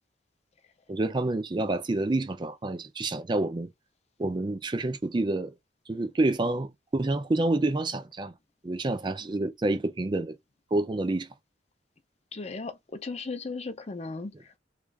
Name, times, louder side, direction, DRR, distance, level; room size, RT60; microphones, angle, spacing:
voice 1, 0.9-3.7 4.2-5.5 5.9-8.3 8.6-10.3 10.7-11.3, right 2 dB, 25° right, 0.4 m, -28 dB
voice 2, 12.3-14.6, left 3 dB, 35° left, 0.6 m, -36 dB
3.2 x 2.4 x 3.4 m
head